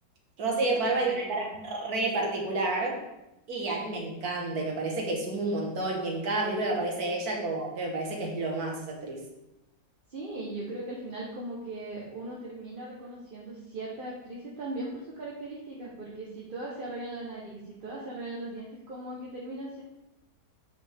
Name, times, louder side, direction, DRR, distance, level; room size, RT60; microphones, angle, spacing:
voice 1, 0.4-3.0 3.5-9.2, right 2 dB, 60° right, -1 dB, 2.0 m, -30 dB
voice 2, 0.9-1.3 10.1-19.8, right 2 dB, 35° right, -5 dB, 1.2 m, -39 dB
8.6 x 5.2 x 3.6 m, 0.93 s
omnidirectional pair, 1.9 m